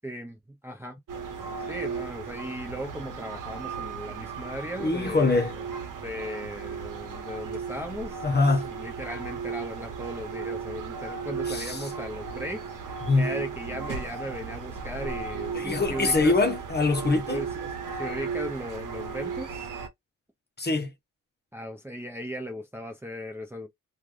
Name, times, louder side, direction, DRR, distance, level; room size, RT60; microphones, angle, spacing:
voice 1, 0.0-1.0 1.7-5.5 6.0-8.2 8.6-16.4 17.3-19.7 21.5-23.7, equal, 5° right, 0.6 m, -37 dB
sound 1, 1.1-19.9, right 5 dB, 75° right, 0.9 m, -35 dB
voice 2, 4.8-5.5 8.2-8.7 11.5-11.9 13.0-13.3 15.5-17.4 20.6-20.9, left 3 dB, 30° left, 0.8 m, -24 dB
3.2 x 2.4 x 2.4 m
cardioid pair, 70°, 33 cm